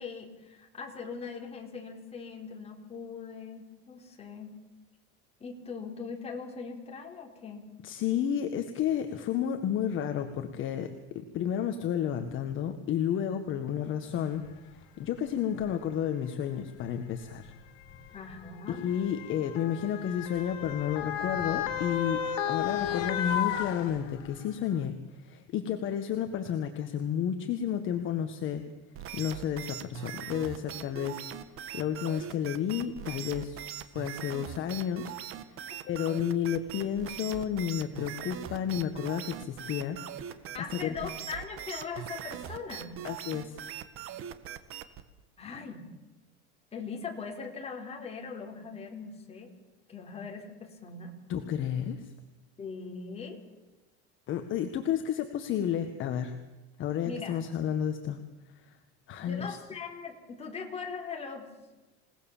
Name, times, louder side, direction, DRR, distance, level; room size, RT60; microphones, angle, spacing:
voice 1, 0.0-4.5 5.4-7.6 18.1-18.8 40.5-42.9 45.4-45.9 46.7-49.5 49.9-51.1 52.6-53.4 57.0-57.4 59.2-61.5, left 5 dB, 20° left, 1 dB, 4.2 m, -40 dB
voice 2, 7.8-14.4 15.0-17.5 18.7-28.6 29.1-31.2 31.7-35.5 35.8-40.4 40.7-40.9 43.0-43.6 51.3-52.1 54.3-56.3 56.8-58.2 58.5-58.8 59.1-59.6, left 9 dB, 40° left, 7 dB, 1.7 m, -31 dB
Motor vehicle (road) / Siren, 14.5-14.6 15.5-15.7 16.8-24.4 24.8-24.9, left 9 dB, 80° left, 3.1 m, -34 dB
sound 1, 28.9-45.0, right 10 dB, 45° right, 1.7 m, -41 dB
28.0 x 18.5 x 7.4 m, 1.1 s
cardioid pair, 150°, 30 cm